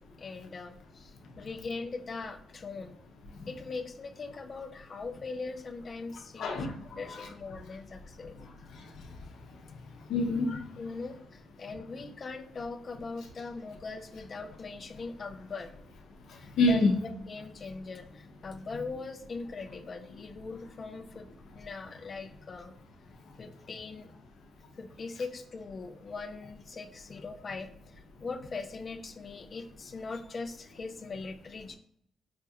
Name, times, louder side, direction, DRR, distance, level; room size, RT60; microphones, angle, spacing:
voice 1, 0.2-1.1 1.4-3.0 3.5-8.4 10.8-15.7 16.4-21.3 21.6-22.7 23.4-24.1 24.8-31.8, left 4 dB, 30° left, 7 dB, 0.3 m, -41 dB
voice 2, 6.4-7.3 8.4-9.7 9.9-10.8 16.3-17.0, left 2 dB, 75° left, 3 dB, 0.6 m, -30 dB
5.0 x 2.7 x 2.4 m, 0.67 s
cardioid pair, 160°, 0 cm